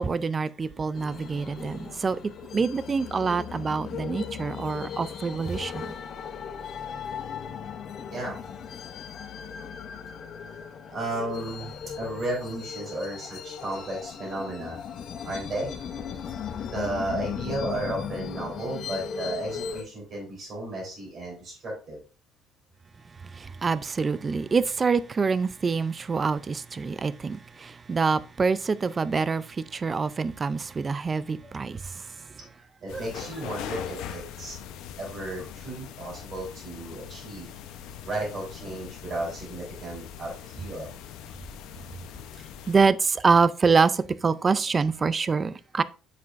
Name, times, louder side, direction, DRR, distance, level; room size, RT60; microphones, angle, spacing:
voice 1, 0.0-2.2 2.5-6.0 23.2-32.3 32.9-33.1 42.7-45.8, right 5 dB, 25° right, 0.3 m, -26 dB
sound 1, 0.9-19.8, left 7 dB, 45° left, 0.7 m, -37 dB
voice 2, 10.9-14.8 15.2-15.7 16.7-22.0 32.8-34.6 35.0-37.5 38.0-40.9, right 1 dB, 40° right, 3.5 m, -34 dB
sound 2, 32.9-42.8, left 9 dB, 80° left, 0.7 m, -41 dB
7.5 x 6.0 x 2.5 m
cardioid pair, 150°, 0 cm